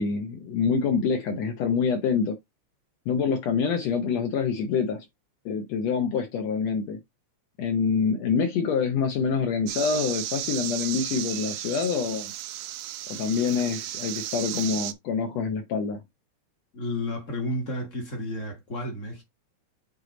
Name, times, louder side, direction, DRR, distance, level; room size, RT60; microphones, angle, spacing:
voice 1, 0.0-2.4 3.1-5.1 5.5-7.0 7.6-12.3 13.1-16.0, left 5 dB, 70° left, 2.0 m, -26 dB
sound 1, 9.7-14.9, right 13 dB, 80° right, 1.5 m, -34 dB
voice 2, 16.7-19.2, left 1 dB, 40° left, 1.2 m, -32 dB
8.1 x 3.0 x 3.9 m
omnidirectional pair, 3.3 m